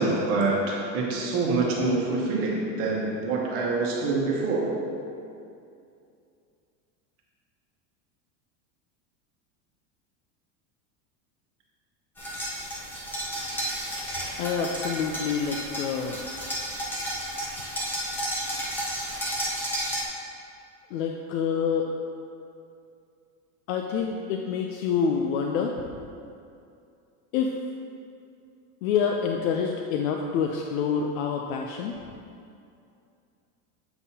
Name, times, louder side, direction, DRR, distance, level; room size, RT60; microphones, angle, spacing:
voice 1, 0.0-4.7, right 3 dB, 35° right, -2 dB, 1.1 m, -26 dB
sound 1, 12.2-20.0, equal, 5° left, 0.4 m, -32 dB
voice 2, 14.4-16.2 20.9-21.9 23.7-25.8 27.3-27.6 28.8-32.0, left 6 dB, 90° left, 2 dB, 0.6 m, -27 dB
8.0 x 5.5 x 2.8 m, 2.5 s
supercardioid pair, 175°, 40 cm